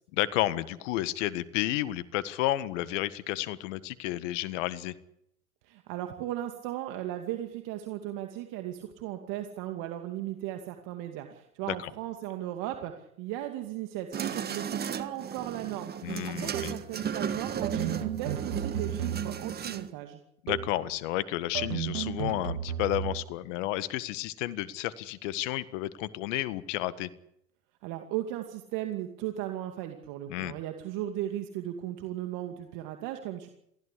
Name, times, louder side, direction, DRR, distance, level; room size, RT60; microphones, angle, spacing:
voice 1, 0.1-4.9 11.7-11.9 16.0-16.7 20.4-27.1 30.3-30.5, left 15 dB, 60° left, 15 dB, 1.7 m, -31 dB
voice 2, 5.6-20.2 27.8-33.5, right 13 dB, 50° right, 5 dB, 2.5 m, -36 dB
sound 1, 14.1-19.9, right 7 dB, 20° right, 1.7 m, -35 dB
sound 2, 16.5-17.0 17.6-19.6 20.5-20.9 21.5-23.3, right 10 dB, 80° right, 1.5 m, -34 dB
23.0 x 16.0 x 8.5 m, 0.76 s
hypercardioid pair, 110°, 42 cm